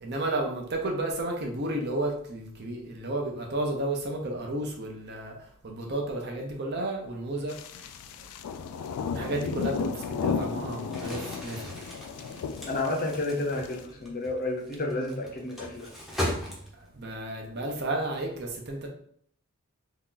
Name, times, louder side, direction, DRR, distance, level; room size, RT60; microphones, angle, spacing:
voice 1, 0.0-5.3 5.6-7.9 8.2-8.3 9.1-11.8 16.9-18.9, right 1 dB, 50° right, 1 dB, 0.6 m, -32 dB
sound 1, 7.5-13.8, left 6 dB, 85° left, 0.3 m, -34 dB
Crumpling crinkling, 10.8-17.0, equal, ahead, 0.6 m, -38 dB
voice 2, 12.7-15.9, left 2 dB, 40° left, 1 dB, 0.6 m, -31 dB
2.8 x 2.4 x 3.7 m, 0.62 s
head